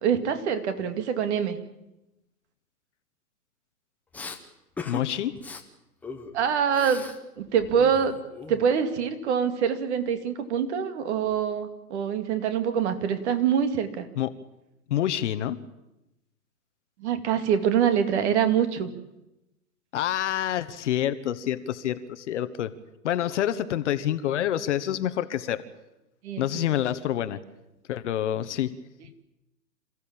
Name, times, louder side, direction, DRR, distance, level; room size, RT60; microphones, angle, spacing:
voice 1, 0.0-1.6 6.3-7.1 7.4-8.2 8.5-14.1 17.0-18.9 26.2-26.7, right 7 dB, 45° right, 9 dB, 2.4 m, -25 dB
Respiratory sounds, 4.1-4.4 4.8-5.0 5.3-5.6 6.0-7.2 7.5-8.9, left 4 dB, 5° left, 0.8 m, -39 dB
voice 2, 4.9-5.4 14.2-14.3 14.9-15.6 19.9-22.7 23.0-25.6 26.4-27.4 27.9-28.7, left 11 dB, 45° left, 12 dB, 1.3 m, -27 dB
27.5 x 15.0 x 8.8 m, 0.94 s
hypercardioid pair, 140°, 48 cm